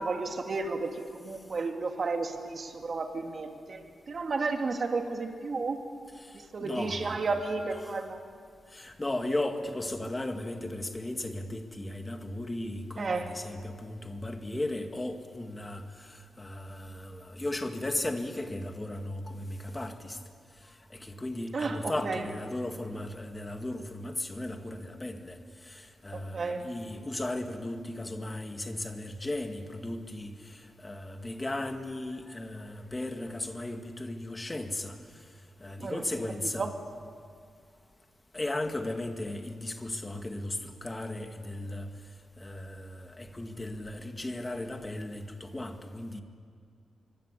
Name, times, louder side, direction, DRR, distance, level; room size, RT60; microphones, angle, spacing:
voice 1, 0.0-5.8 6.5-8.2 13.0-13.3 21.5-22.2 26.1-26.6 35.8-36.0 36.6-36.7, right 3 dB, 45° right, 2.7 m, -32 dB
voice 2, 6.2-7.4 7.8-8.1 8.7-20.2 20.9-34.9 35.6-36.7 38.3-41.9 42.4-46.2, left 1 dB, 15° left, 2.0 m, -36 dB
25.0 x 24.5 x 8.5 m
wide cardioid pair, 125°, 0 cm